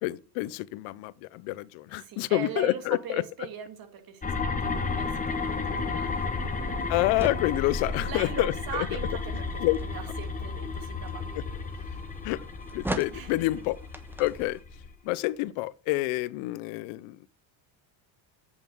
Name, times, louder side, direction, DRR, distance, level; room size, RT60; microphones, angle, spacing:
voice 1, 0.0-3.2 6.9-8.9 9.6-9.8 12.2-12.4 12.7-13.8 14.2-14.6 15.0-17.3, left 18 dB, 75° left, 0.7 m, -28 dB
voice 2, 2.0-6.8 8.0-11.4 11.9-12.0 13.1-13.3, right 7 dB, 45° right, 2.2 m, -40 dB
sound 1, 4.2-14.9, left 4 dB, 15° left, 1.5 m, -33 dB
sound 2, 4.6-14.6, right 1 dB, 5° right, 1.1 m, -43 dB
8.4 x 7.1 x 7.7 m
cardioid pair, 130°, 49 cm